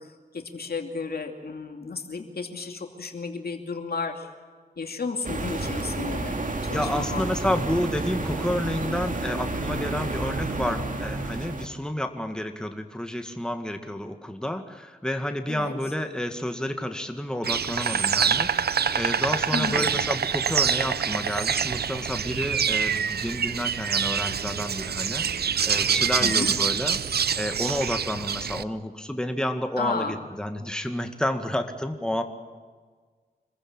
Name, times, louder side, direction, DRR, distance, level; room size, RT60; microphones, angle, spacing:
voice 1, 0.0-4.3 4.8-6.4 6.6-7.6 15.5-15.8 19.5-19.9 26.2-26.5 29.8-30.2, left 4 dB, 70° left, 4 dB, 2.6 m, -33 dB
sound 1, 5.2-11.7, right 2 dB, 55° right, 2.5 m, -30 dB
voice 2, 6.7-27.0 27.3-32.2, left 1 dB, 5° left, 6 dB, 2.0 m, -30 dB
Insect, 17.4-28.6, right 7 dB, 75° right, 0.6 m, -26 dB
26.0 x 15.0 x 8.9 m, 1.5 s
cardioid pair, 50°, 16 cm